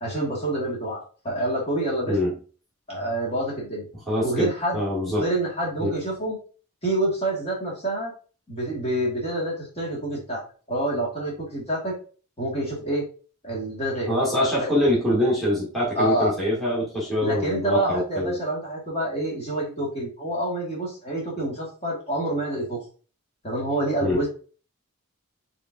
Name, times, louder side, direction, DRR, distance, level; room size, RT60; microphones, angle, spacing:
voice 1, 0.0-2.2 2.9-3.9 4.2-4.8 5.1-6.4 6.8-8.1 8.5-10.4 10.7-12.0 12.4-13.0 13.4-14.2 14.6-14.7 16.0-16.3 17.2-22.8 23.4-24.3, right 1 dB, 30° left, -4 dB, 1.9 m, -27 dB
voice 2, 4.1-5.3 5.8-5.9 14.1-18.4 24.0-24.2, left 1 dB, ahead, -7 dB, 1.7 m, -24 dB
5.0 x 3.8 x 2.7 m, 0.38 s
head